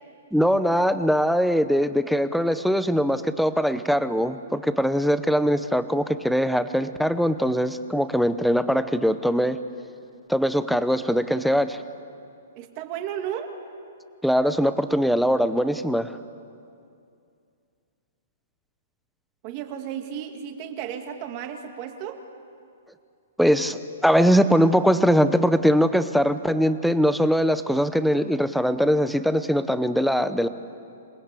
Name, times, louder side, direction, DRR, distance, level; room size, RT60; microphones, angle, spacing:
voice 1, 0.3-9.6 10.3-11.8 14.2-16.2 23.4-30.5, equal, ahead, 12 dB, 0.6 m, -21 dB
voice 2, 12.5-13.5 19.4-22.2, right 9 dB, 30° right, 5 dB, 2.1 m, -33 dB
27.0 x 20.5 x 8.3 m, 2.5 s
hypercardioid pair, 170°, 0 cm